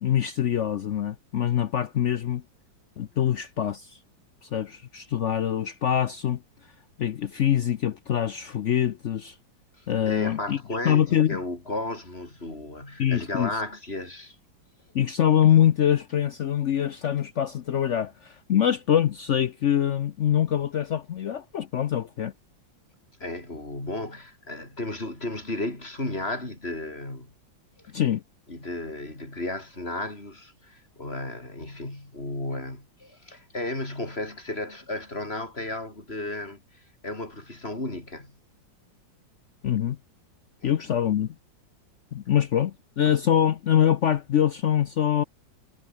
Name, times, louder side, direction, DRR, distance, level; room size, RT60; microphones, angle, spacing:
voice 1, 0.0-2.4 3.0-4.0 4.4-6.4 7.0-9.4 9.9-10.6 10.8-11.4 13.0-13.5 14.9-22.3 27.9-28.2 39.6-40.0 40.6-41.3 42.1-45.2, left 10 dB, 85° left, 0.6 m, -24 dB
voice 2, 9.8-14.4 23.2-27.3 27.8-27.9 28.5-38.3 40.6-40.8, left 2 dB, 30° left, 6.1 m, -34 dB
omnidirectional pair, 2.1 m